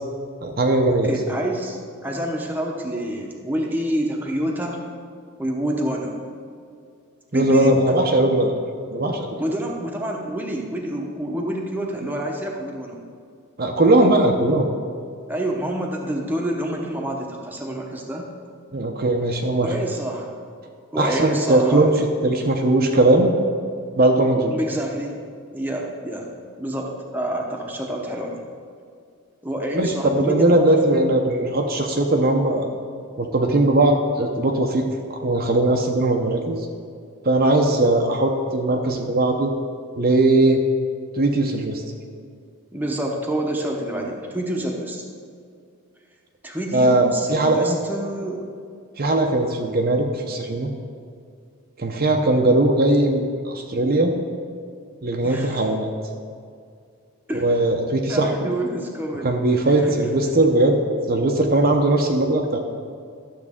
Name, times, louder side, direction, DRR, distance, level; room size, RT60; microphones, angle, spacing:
voice 1, 0.4-1.1 7.3-8.6 8.9-9.3 13.6-14.7 18.7-19.7 21.0-21.9 22.2-23.4 24.0-24.5 29.7-32.7 33.2-34.8 35.1-36.6 37.2-39.5 40.0-40.6 41.2-41.8 46.7-47.8 49.0-50.7 51.8-54.1 55.0-55.9 57.3-58.5 59.2-60.8 61.1-62.6, right 2 dB, 40° right, 2 dB, 0.6 m, -19 dB
voice 2, 1.0-4.8 5.4-6.2 7.3-7.8 9.4-13.0 15.3-18.3 19.6-20.3 20.9-22.0 24.5-25.2 25.5-26.3 26.6-28.4 29.4-30.6 30.9-31.0 42.7-45.0 46.4-48.5 55.2-55.6 57.3-57.4 58.1-59.3 59.6-60.0, right 1 dB, 10° right, 0 dB, 0.8 m, -27 dB
12.0 x 7.1 x 3.6 m, 2.3 s
head